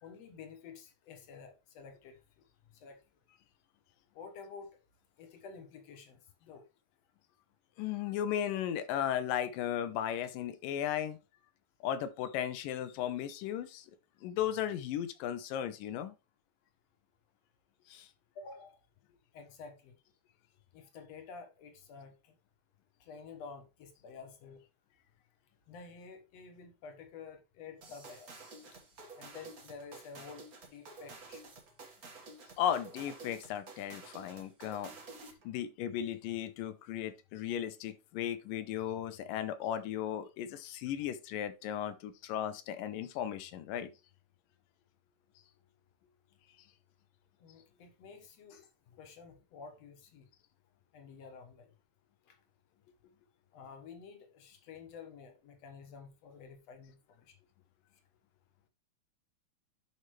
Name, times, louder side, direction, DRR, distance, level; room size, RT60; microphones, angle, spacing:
voice 1, 0.0-2.4 2.7-3.0 4.1-4.8 5.2-6.7 8.3-8.4 18.4-18.9 19.3-19.9 20.7-22.4 23.0-24.6 25.7-28.4 28.7-28.8 29.2-31.5 32.4-32.5 34.2-34.3 47.4-50.3 50.9-51.7 52.2-52.4 53.5-57.4, left 5 dB, 60° left, 2.2 m, -51 dB
voice 2, 7.8-11.2 11.8-13.9 14.2-16.1 17.9-18.1 32.6-34.9 35.4-43.9, left 10 dB, 80° left, 2.5 m, -36 dB
sound 1, 27.8-35.5, right 3 dB, 40° right, 1.4 m, -51 dB
11.0 x 5.3 x 3.2 m
omnidirectional pair, 3.9 m